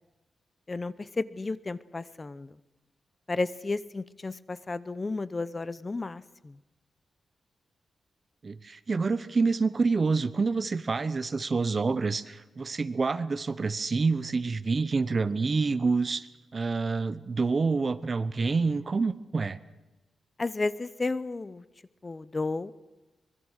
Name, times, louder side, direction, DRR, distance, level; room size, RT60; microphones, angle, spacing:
voice 1, 0.7-2.6 3.3-6.6 20.4-21.6 22.0-22.7, left 3 dB, 25° left, 17 dB, 0.7 m, -33 dB
voice 2, 8.4-19.6, right 4 dB, 35° right, 15 dB, 0.9 m, -27 dB
25.0 x 22.0 x 6.5 m, 1.1 s
wide cardioid pair, 120°, 0 cm